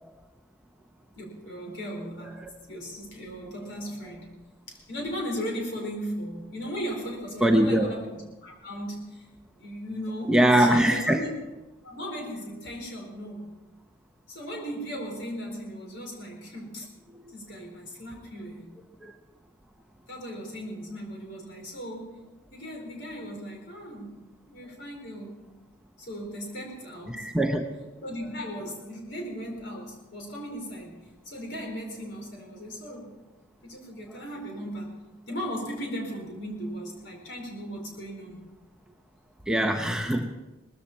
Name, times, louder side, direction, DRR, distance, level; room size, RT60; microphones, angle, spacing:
voice 1, 1.1-4.3 4.7-9.3 9.6-11.3 11.8-13.5 14.3-16.9 17.3-18.7 20.1-22.2 22.5-24.1 24.5-25.4 26.0-27.3 28.0-33.2 33.6-34.9 35.3-38.4, equal, 70° left, 1 dB, 4.4 m, -37 dB
voice 2, 7.4-7.9 10.3-11.2 19.0-19.1 27.1-27.7 39.5-40.3, right 1 dB, 5° right, 3 dB, 0.8 m, -22 dB
19.5 x 14.5 x 4.3 m, 1.1 s
head